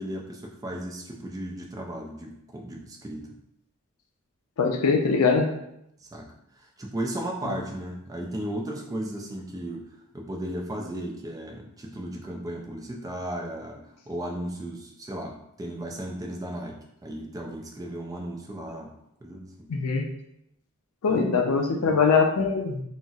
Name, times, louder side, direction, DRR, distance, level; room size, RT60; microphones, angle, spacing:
voice 1, 0.0-3.4 6.0-6.3 6.5-9.8 10.1-18.9 19.2-19.7 21.1-22.0, right 1 dB, 15° right, 0 dB, 0.3 m, -35 dB
voice 2, 4.6-5.5 7.4-7.5 19.7-20.1 21.0-22.8, left 5 dB, 85° left, 3 dB, 0.5 m, -22 dB
4.0 x 2.0 x 2.3 m, 0.79 s
head